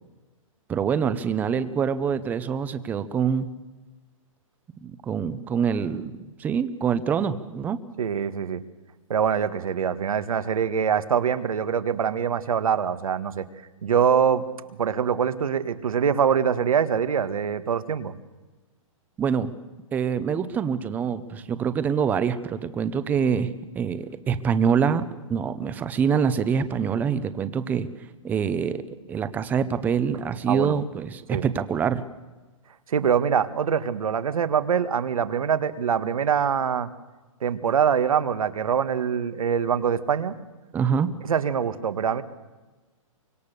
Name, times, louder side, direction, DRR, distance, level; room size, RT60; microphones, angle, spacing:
voice 1, 0.7-3.5 4.8-7.8 19.2-19.5 19.9-25.0 25.3-27.9 28.2-28.8 29.1-32.0 40.7-41.1, right 7 dB, 10° right, 13 dB, 0.7 m, -25 dB
voice 2, 8.0-8.6 9.1-13.4 13.8-18.1 30.5-30.8 31.3-31.4 32.9-36.9 37.4-40.3 41.3-42.2, right 7 dB, 90° right, 11 dB, 1.7 m, -24 dB
25.0 x 23.5 x 6.8 m, 1.2 s
hypercardioid pair, 165°, 17 cm